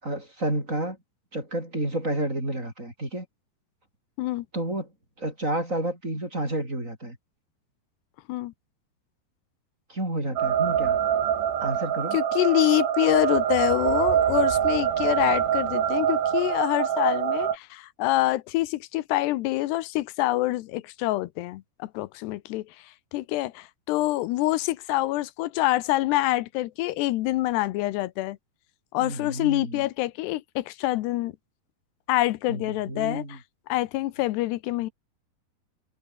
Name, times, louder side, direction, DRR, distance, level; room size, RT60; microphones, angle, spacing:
voice 1, 0.0-1.0 1.3-3.3 4.5-4.9 5.2-7.2 9.9-11.0 11.6-12.2 29.0-29.9 32.5-33.4, right 1 dB, 15° right, 7.8 m, -30 dB
sound 1, 10.4-17.6, right 9 dB, 80° right, 4.7 m, -24 dB
voice 2, 12.1-22.6 23.1-28.4 28.9-31.3 32.1-33.4 33.7-34.9, left 17 dB, 90° left, 3.0 m, -26 dB
omnidirectional pair, 4.8 m